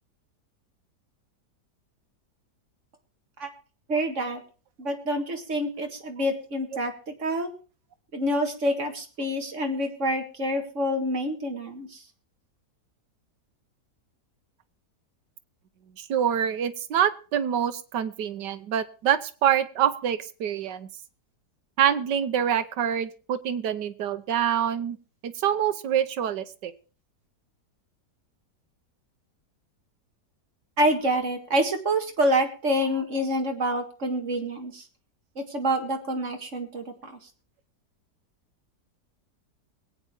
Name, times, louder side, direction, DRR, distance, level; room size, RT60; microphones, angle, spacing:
voice 1, 3.9-4.4 4.8-7.5 8.1-12.0 30.8-34.9 35.4-37.2, right 1 dB, 45° right, 4 dB, 2.3 m, -27 dB
voice 2, 16.0-20.9 21.8-25.0 25.2-26.7, right 9 dB, 85° right, 12 dB, 1.6 m, -26 dB
21.5 x 8.8 x 4.5 m, 0.37 s
omnidirectional pair, 1.8 m